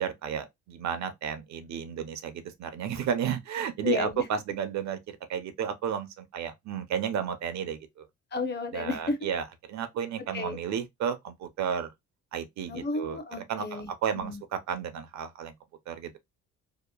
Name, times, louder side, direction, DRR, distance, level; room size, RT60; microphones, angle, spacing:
voice 1, 0.0-5.0 5.3-8.1 8.7-11.9 12.3-13.2 13.5-15.5 15.9-16.1, right 8 dB, 65° right, 0.6 m, -32 dB
voice 2, 3.8-4.2 8.3-9.2 10.3-10.6 12.7-14.4, left 3 dB, 35° left, 0.6 m, -32 dB
2.8 x 2.1 x 2.2 m
cardioid pair, 110°, 30 cm